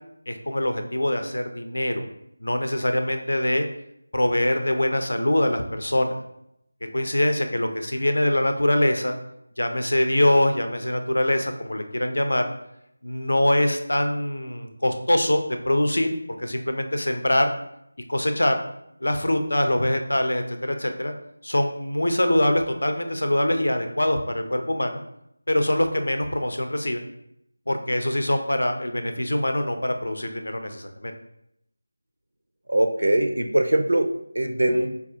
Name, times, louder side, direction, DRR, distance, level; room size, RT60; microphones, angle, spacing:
voice 1, 0.3-2.0 2.4-3.7 4.1-6.2 6.9-9.1 9.6-12.4 13.0-16.1 16.4-17.5 18.1-18.6 19.0-21.1 21.4-25.0 25.5-27.0 27.7-31.1, left 1 dB, 85° left, 6 dB, 0.6 m, -23 dB
voice 2, 32.7-34.9, right 1 dB, 90° right, 6 dB, 0.5 m, -22 dB
4.1 x 2.4 x 2.7 m, 0.77 s
figure-of-eight pair, 170°, 0 cm